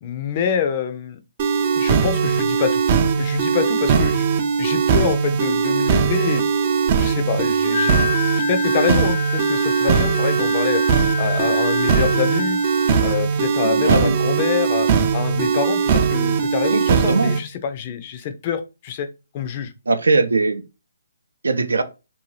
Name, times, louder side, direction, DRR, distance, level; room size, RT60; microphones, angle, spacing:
voice 1, 0.0-1.2 1.7-2.8 3.2-4.3 4.6-6.4 7.0-10.8 11.2-12.6 13.0-19.1 19.3-19.7, left 8 dB, 35° left, 0.4 m, -26 dB
sound 1, 1.4-17.4, right 6 dB, 35° right, 0.4 m, -20 dB
Wind instrument woodwind instrument, 7.7-13.2, left 5 dB, 90° left, 0.8 m, -28 dB
voice 2, 13.6-14.1 16.7-17.3 19.9-20.6 21.4-21.8, right 3 dB, 85° right, 0.5 m, -20 dB
2.6 x 2.2 x 3.2 m
hypercardioid pair, 150°, 0 cm